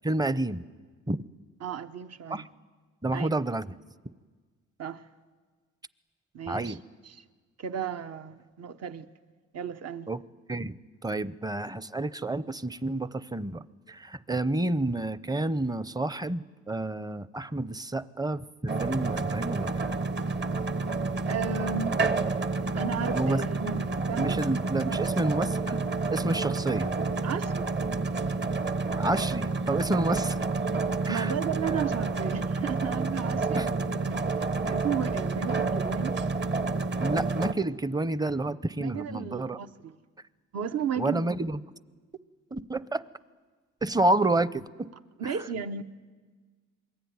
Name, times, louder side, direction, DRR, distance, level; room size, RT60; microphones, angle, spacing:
voice 1, 0.0-0.6 1.1-1.2 2.3-2.4 3.0-3.7 6.5-6.8 10.1-10.2 10.5-10.8 11.0-19.8 23.1-23.5 24.2-25.9 26.1-26.9 29.0-30.4 31.1-31.3 33.5-33.7 37.0-39.6 41.0-41.6 42.5-43.0 43.8-44.9 45.2-45.3, right 2 dB, 15° right, 0.7 m, -29 dB
voice 2, 1.6-2.4 3.1-3.3 4.8-5.1 6.3-6.8 7.0-7.2 7.6-9.1 9.5-10.1 21.3-22.0 22.7-24.4 24.8-25.2 27.2-27.7 31.1-34.3 34.6-36.2 38.8-39.9 40.5-41.2 45.2-45.8, right 7 dB, 55° right, 1.2 m, -34 dB
sound 1, 18.7-37.5, right 3 dB, 35° right, 1.2 m, -29 dB
26.5 x 22.0 x 9.6 m
cardioid pair, 90°, 30 cm